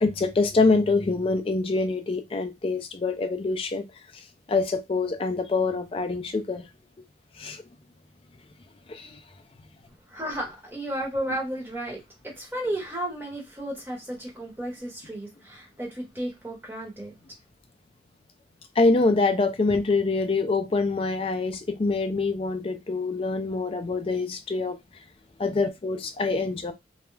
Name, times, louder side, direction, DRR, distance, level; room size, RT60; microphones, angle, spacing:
voice 1, 0.0-3.9 4.5-6.7 7.4-7.6 8.9-9.2 11.3-11.4 18.8-24.8 25.4-26.7, left 3 dB, 30° left, 0.3 m, -25 dB
voice 2, 10.1-17.1, right 1 dB, 10° right, 0.9 m, -33 dB
2.2 x 2.0 x 3.1 m
head